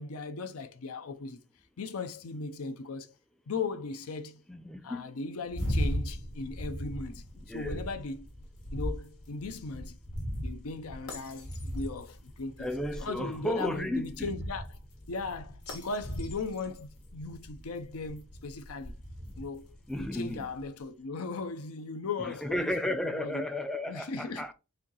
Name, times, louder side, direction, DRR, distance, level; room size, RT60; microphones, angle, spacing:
voice 1, 0.0-1.4 1.8-3.1 3.5-4.5 4.8-7.2 7.5-8.3 8.7-10.0 10.4-12.7 13.0-14.8 15.1-18.9 19.4-19.7 20.0-23.5 23.9-24.4, left 3 dB, 70° left, 0.6 m, -38 dB
voice 2, 4.5-5.1 7.5-7.8 12.6-14.3 19.3-19.5 19.9-20.5 22.2-24.5, left 1 dB, 5° left, 0.4 m, -33 dB
sound 1, 5.5-20.6, equal, 90° left, 1.5 m, -38 dB
4.4 x 2.7 x 3.8 m
head